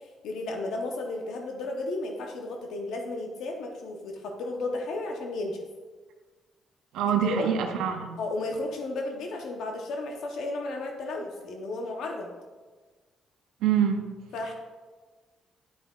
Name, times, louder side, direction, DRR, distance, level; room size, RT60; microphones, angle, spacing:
voice 1, 0.2-5.6 7.1-7.5 8.2-12.3 14.3-14.5, left 2 dB, 80° left, 3 dB, 0.8 m, -33 dB
voice 2, 6.9-8.2 13.6-14.1, right 8 dB, 90° right, 5 dB, 0.5 m, -25 dB
10.5 x 5.5 x 2.3 m, 1.3 s
cardioid pair, 90°, 0 cm